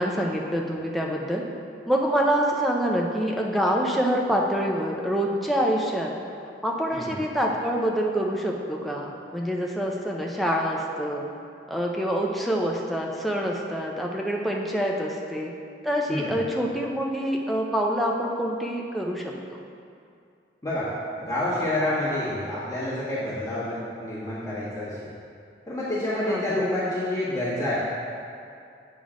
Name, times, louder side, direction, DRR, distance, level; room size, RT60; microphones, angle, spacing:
voice 1, 0.0-1.4 1.9-6.1 6.6-11.3 11.7-15.5 15.8-19.6 26.2-26.6, equal, ahead, -1 dB, 0.5 m, -26 dB
voice 2, 21.2-25.0 25.7-27.8, left 1 dB, 20° left, -13 dB, 1.4 m, -28 dB
8.7 x 3.7 x 4.9 m, 2.5 s
head